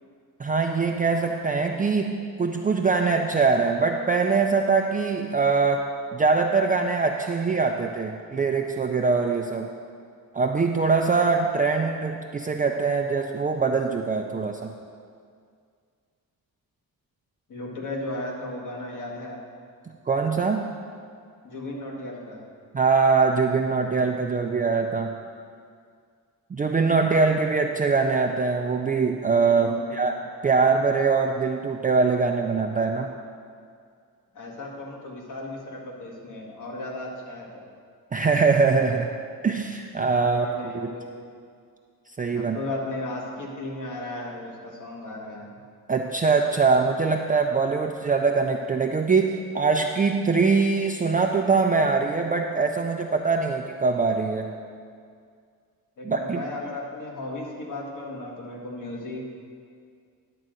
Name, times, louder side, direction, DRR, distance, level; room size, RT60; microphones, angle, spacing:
voice 1, 0.4-5.9 6.1-9.7 10.3-14.7 20.1-20.7 22.7-25.1 26.5-30.2 30.4-33.1 38.1-39.1 39.4-40.9 42.2-42.6 45.9-54.5 56.0-56.4, right 4 dB, 25° right, 2 dB, 0.4 m, -23 dB
voice 2, 17.5-19.4 21.4-22.4 29.6-29.8 34.3-37.6 40.2-41.1 42.3-45.6 56.0-59.2, left 2 dB, 55° left, -1 dB, 1.7 m, -35 dB
11.0 x 3.8 x 7.6 m, 2.2 s
cardioid pair, 115°, 37 cm